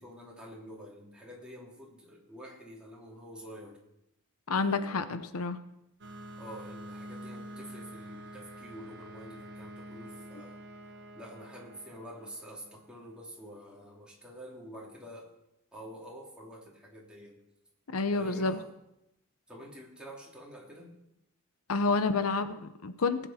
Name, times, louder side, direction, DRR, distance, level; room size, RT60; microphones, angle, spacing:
voice 1, 0.0-3.8 4.5-5.2 6.4-10.6 11.1-15.3 15.7-17.4 18.1-18.7 19.5-20.9, equal, 5° right, -4 dB, 3.0 m, -48 dB
voice 2, 4.5-5.6 17.9-18.6 21.7-23.3, left 3 dB, 90° left, 11 dB, 0.8 m, -29 dB
sound 1, 6.0-13.4, right 1 dB, 55° right, 1.3 m, -47 dB
19.5 x 8.3 x 4.3 m, 0.86 s
head